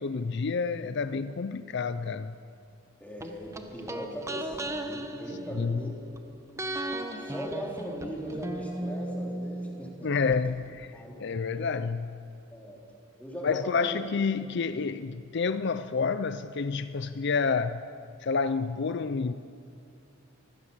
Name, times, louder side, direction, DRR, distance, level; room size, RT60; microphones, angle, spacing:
voice 1, 0.0-2.4 5.6-5.8 10.0-10.9 11.2-12.2 13.4-17.8 18.2-19.3, left 5 dB, 60° left, 12 dB, 0.5 m, -29 dB
voice 2, 3.0-6.0 6.9-10.3 10.9-11.2 12.5-12.8 13.2-13.9, equal, 5° left, -3 dB, 3.9 m, -39 dB
sound 1, 3.2-6.2 6.6-10.4 10.6-10.7, right 1 dB, 15° right, 1.1 m, -36 dB
24.0 x 16.0 x 7.4 m, 2.5 s
head